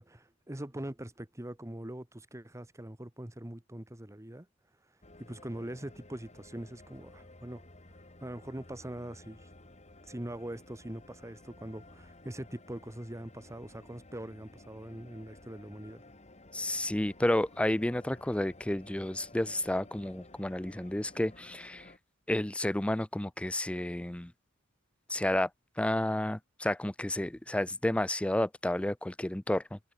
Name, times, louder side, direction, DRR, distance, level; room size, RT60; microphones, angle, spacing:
voice 1, 0.0-4.5 5.2-7.6 8.2-9.4 10.1-16.0, right 1 dB, 15° right, 1.2 m, -42 dB
sound 1, 5.0-22.0, left 2 dB, 35° left, 4.2 m, -55 dB
voice 2, 16.5-21.9 22.3-24.3 25.1-25.5 25.8-29.8, left 1 dB, 5° left, 0.4 m, -31 dB
head